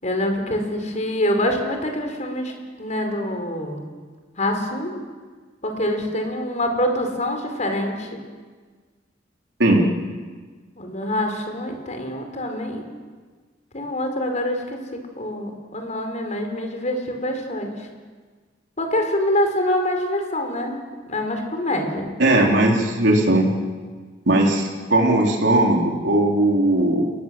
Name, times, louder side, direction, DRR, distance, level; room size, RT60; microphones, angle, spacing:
voice 1, 0.0-2.5 2.8-3.8 4.4-5.0 5.6-8.2 10.8-12.8 13.7-17.9 18.8-20.8 21.1-22.1, left 1 dB, 40° left, 4 dB, 4.8 m, -25 dB
voice 2, 22.2-23.5 24.3-27.0, right 1 dB, 75° right, -1 dB, 4.2 m, -18 dB
30.0 x 20.0 x 7.8 m, 1.5 s
head